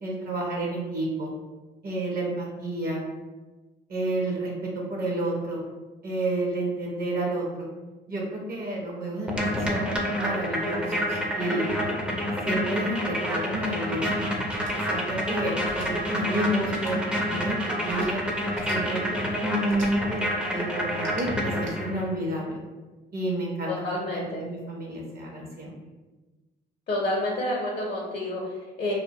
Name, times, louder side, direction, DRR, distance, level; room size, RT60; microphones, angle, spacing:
voice 1, 0.0-1.3 1.8-3.0 3.9-5.6 6.0-7.7 8.1-11.8 12.4-14.2 14.9-18.2 18.7-22.6 23.1-23.7 24.1-25.7, right 1 dB, 50° right, -2 dB, 0.6 m, -30 dB
sound 1, 9.3-22.1, equal, 5° right, 0.4 m, -28 dB
sound 2, 14.5-14.7 15.6-15.9 16.7-16.9 17.8-18.1 18.5-18.8 19.7-19.9 20.9-21.7, right 2 dB, 85° right, 0.6 m, -45 dB
voice 2, 23.7-24.4 26.9-28.9, left 1 dB, 50° left, -3 dB, 0.6 m, -29 dB
2.3 x 2.1 x 2.6 m, 1.2 s
cardioid pair, 90°, 20 cm